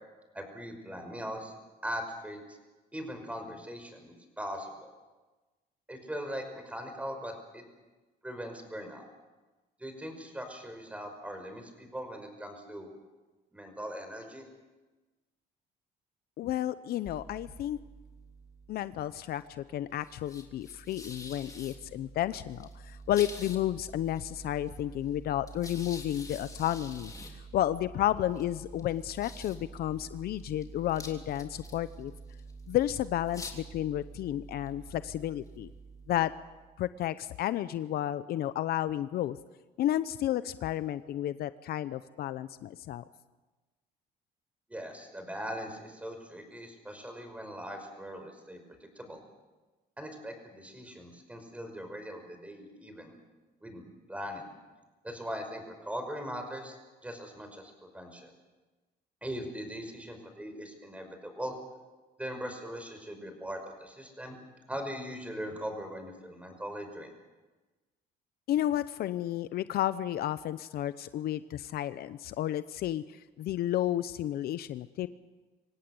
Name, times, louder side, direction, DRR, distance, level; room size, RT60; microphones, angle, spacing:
voice 1, 0.3-1.5 1.8-2.6 2.9-4.9 5.9-7.6 8.2-9.0 9.8-12.9 13.5-14.5 44.7-48.6 49.0-49.2 50.0-53.2 53.6-54.5 55.0-56.8 57.0-58.3 59.2-61.6 62.2-64.4 64.7-67.1, equal, 10° right, 5 dB, 5.5 m, -40 dB
voice 2, 16.4-17.8 18.7-27.1 27.5-32.1 32.7-35.7 36.1-36.3 36.8-39.4 39.8-43.0 68.5-75.1, left 12 dB, 65° left, 14 dB, 0.8 m, -32 dB
sound 1, 17.0-36.9, right 1 dB, 20° left, 3.3 m, -47 dB
25.5 x 17.0 x 7.9 m, 1.2 s
cardioid pair, 110°, 17 cm